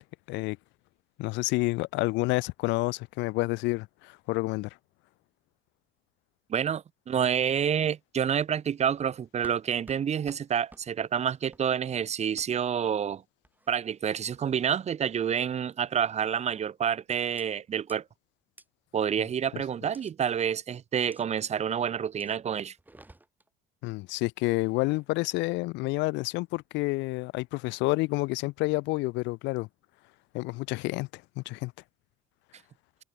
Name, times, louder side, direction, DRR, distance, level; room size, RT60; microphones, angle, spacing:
voice 1, 1.2-4.7 23.8-29.7 30.3-31.7, left 22 dB, 85° left, 1.6 m, -29 dB
voice 2, 6.5-13.2 13.7-18.0 18.9-22.7, right 8 dB, 35° right, 1.3 m, -28 dB
sound 1, 9.4-9.6 9.9-10.0 10.3-10.4 10.7-10.8 11.5-11.7 12.4-12.5 13.4-13.8 14.3-14.7 15.2-15.5 16.3-16.6 17.4-17.5 17.9-18.0 18.6-18.7 19.9-20.1 21.1-21.2 22.2-22.3 22.8-23.5 24.6-25.1, right 2 dB, 10° right, 6.3 m, -53 dB
cardioid pair, 120°, 18 cm